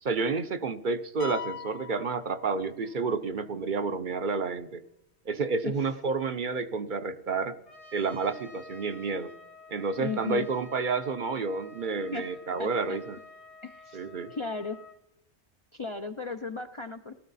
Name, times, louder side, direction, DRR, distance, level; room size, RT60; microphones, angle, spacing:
voice 1, 0.0-4.8 5.3-7.6 7.9-9.3 9.7-13.2 13.9-14.3, right 4 dB, 55° right, 10 dB, 0.7 m, -30 dB
sound 1, 1.2-3.1, left 8 dB, 60° left, 0.9 m, -41 dB
Trumpet, 7.7-15.0, left 3 dB, 85° left, 2.6 m, -50 dB
voice 2, 10.0-10.5 12.1-13.0 13.6-14.8 15.7-17.1, left 4 dB, 40° left, 6 dB, 0.5 m, -36 dB
18.5 x 13.5 x 4.1 m, 0.84 s
omnidirectional pair, 1.1 m